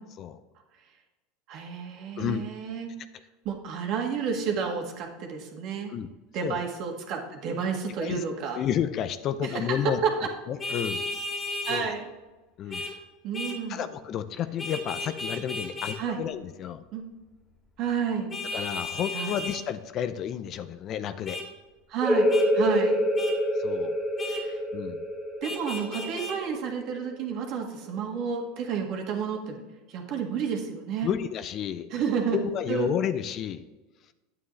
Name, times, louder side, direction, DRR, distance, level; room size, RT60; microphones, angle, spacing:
voice 1, 1.5-2.9 3.5-5.9 6.3-8.6 9.5-9.6 10.0-10.3 11.7-12.1 12.7-12.9 13.2-13.8 16.0-16.2 16.9-17.0 17.8-18.3 19.1-19.4 21.9-22.3 22.5-23.0 24.2-24.6 25.4-29.6 29.9-31.1 31.9-32.4 32.7-33.0, right 6 dB, 55° right, 2 dB, 1.8 m, -30 dB
voice 2, 8.5-10.0 10.5-11.0 11.7-11.9 12.6-12.8 13.7-16.8 18.5-21.4 23.6-23.9 24.7-25.0 31.0-31.9 32.3-33.6, left 9 dB, 45° left, 12 dB, 0.6 m, -31 dB
Vehicle horn car horn honking, 10.6-11.8 12.7-12.9 13.3-13.6 14.6-16.0 18.3-19.6 21.3-21.5 22.3-22.5 23.2-23.4 24.2-24.4 25.4-26.4, left 2 dB, 25° left, 2.2 m, -34 dB
sound 1, 22.0-27.4, equal, 5° left, 1.6 m, -26 dB
9.2 x 8.7 x 3.2 m, 1.1 s
supercardioid pair, 105°, 0 cm